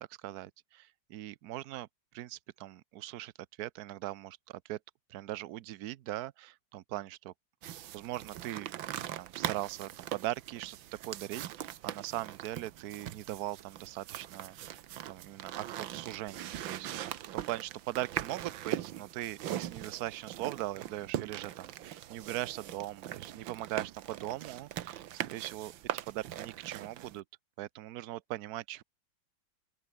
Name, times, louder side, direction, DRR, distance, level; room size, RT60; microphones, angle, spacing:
voice 1, 0.0-1.9 2.1-3.3 3.6-4.8 5.1-7.3 7.9-10.8 11.0-25.7 26.1-27.2 27.6-28.8, right 15 dB, 65° right, 1.0 m, -40 dB
sound 1, 7.6-27.2, right 12 dB, 85° right, 1.7 m, -41 dB
open air
omnidirectional pair, 2.1 m